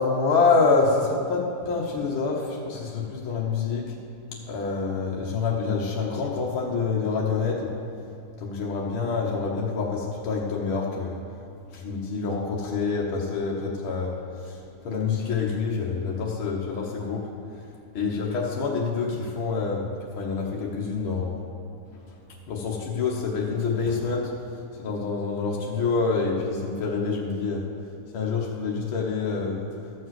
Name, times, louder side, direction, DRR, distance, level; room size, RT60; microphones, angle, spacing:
voice 1, 0.0-3.8 4.5-7.7 8.4-11.2 11.7-14.1 14.4-14.6 14.8-17.2 17.9-19.9 20.2-21.3 22.5-24.3 24.8-27.6 28.1-29.7, left 4 dB, 60° left, -3 dB, 1.4 m, -26 dB
13.0 x 5.4 x 7.7 m, 2.7 s
omnidirectional pair, 3.7 m